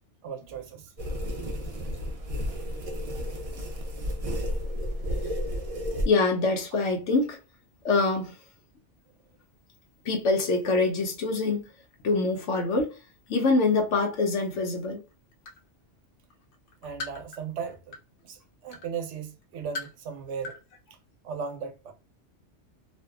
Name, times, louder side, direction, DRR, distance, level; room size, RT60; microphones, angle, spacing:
voice 1, 0.2-0.9 16.8-20.6 21.2-21.9, right 6 dB, 75° right, 0.9 m, -37 dB
sound 1, 1.0-6.1, equal, 55° right, 0.4 m, -31 dB
voice 2, 6.1-7.4 7.8-8.3 10.1-11.6 12.0-12.9 13.3-15.0, left 3 dB, 80° left, 1.0 m, -24 dB
sound 2, 14.5-14.6 14.9-15.7 16.2-18.2 18.7-18.9 19.4-20.0 20.4-20.6 20.9-21.0, left 3 dB, 55° left, 0.7 m, -39 dB
2.6 x 2.2 x 2.3 m
omnidirectional pair, 1.2 m